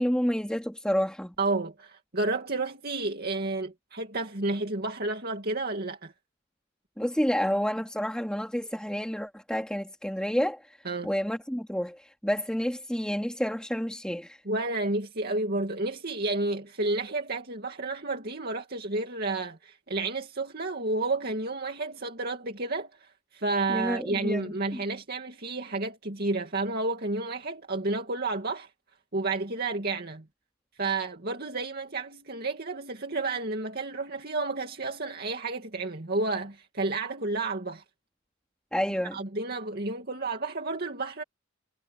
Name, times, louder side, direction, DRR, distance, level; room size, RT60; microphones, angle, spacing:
voice 1, 0.0-1.3 7.0-10.6 11.0-14.4 23.7-24.5 38.7-39.2, equal, 5° left, 2.7 m, -29 dB
voice 2, 1.4-6.1 10.8-11.1 14.4-28.7 29.1-30.2 30.8-37.8 39.1-41.2, right 3 dB, 50° right, 2.4 m, -31 dB
head